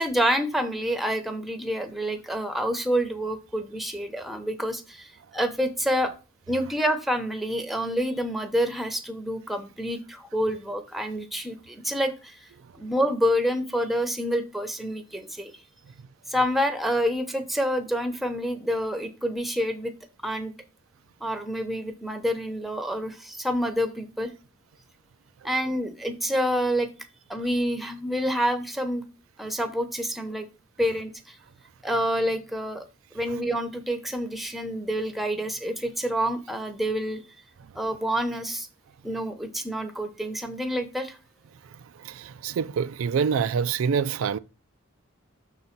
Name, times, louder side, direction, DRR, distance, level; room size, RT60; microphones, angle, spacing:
voice 1, 0.0-6.1 6.5-12.4 12.8-15.5 16.3-19.9 20.2-20.5 21.2-24.3 25.4-26.9 27.3-29.0 29.4-30.5 30.8-31.4 31.8-32.8 33.1-37.2 37.7-38.7 39.0-41.2, equal, ahead, 0.8 m, -27 dB
voice 2, 42.0-44.4, right 6 dB, 85° right, 0.4 m, -26 dB
6.3 x 4.0 x 5.9 m
head